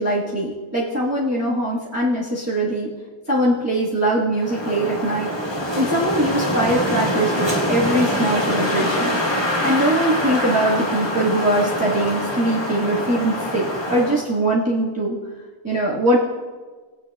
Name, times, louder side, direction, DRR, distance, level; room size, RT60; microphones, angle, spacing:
voice 1, 0.0-2.9 3.3-5.3 5.8-9.1 9.6-15.2 15.6-16.2, right 1 dB, 10° right, -7 dB, 1.3 m, -21 dB
Wind, 4.4-14.3, left 1 dB, 20° left, 1.3 m, -24 dB
18.0 x 8.8 x 2.3 m, 1.4 s
omnidirectional pair, 1.5 m